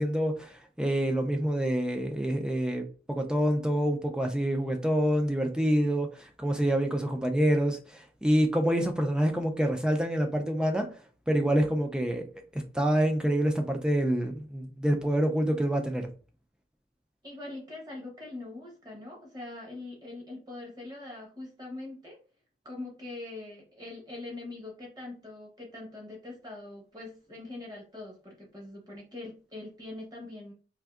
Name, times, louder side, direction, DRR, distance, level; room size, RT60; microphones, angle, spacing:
voice 1, 0.0-10.9 11.3-12.2 12.5-16.1, equal, 5° right, 0.3 m, -27 dB
voice 2, 17.2-22.2 22.6-30.5, left 2 dB, 20° right, 1.0 m, -43 dB
3.4 x 2.6 x 2.4 m
head